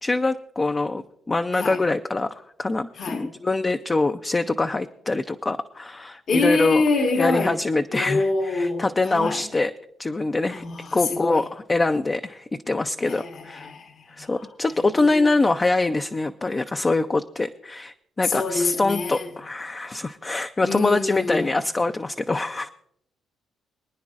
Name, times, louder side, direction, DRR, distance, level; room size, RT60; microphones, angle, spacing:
voice 1, 0.0-6.8 7.2-9.7 10.0-10.6 10.9-13.7 14.2-22.7, left 3 dB, 25° left, 0.4 m, -24 dB
voice 2, 6.3-7.5 7.9-9.4 10.5-11.4 13.0-14.5 14.9-15.2 18.2-19.3 20.6-21.5, left 3 dB, 60° left, 1.2 m, -26 dB
24.5 x 9.5 x 2.4 m
cardioid pair, 90°, 0 cm